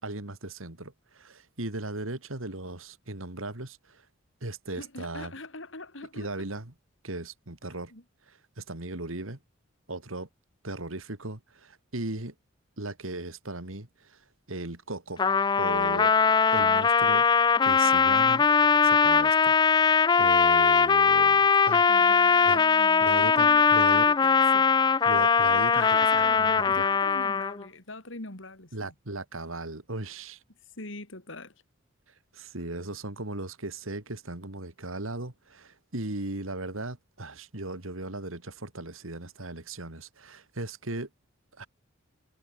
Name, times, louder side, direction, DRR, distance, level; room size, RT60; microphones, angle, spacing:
voice 1, 0.0-4.0 4.4-5.3 6.1-6.7 7.0-7.9 8.3-9.4 9.9-10.3 10.6-12.3 12.8-15.3 15.6-16.2 16.5-17.3 17.6-18.5 18.8-19.8 20.2-21.9 22.4-22.6 23.0-24.1 25.1-25.9 26.2-26.8 28.7-30.4 32.3-41.1 41.6-41.7, right 2 dB, 90° right, 2.9 m, -37 dB
voice 2, 4.8-6.5 7.9-8.0 21.9-24.7 25.7-28.9 30.8-31.5, left 2 dB, 70° left, 4.0 m, -42 dB
Trumpet, 15.2-27.6, left 5 dB, 20° left, 0.3 m, -21 dB
head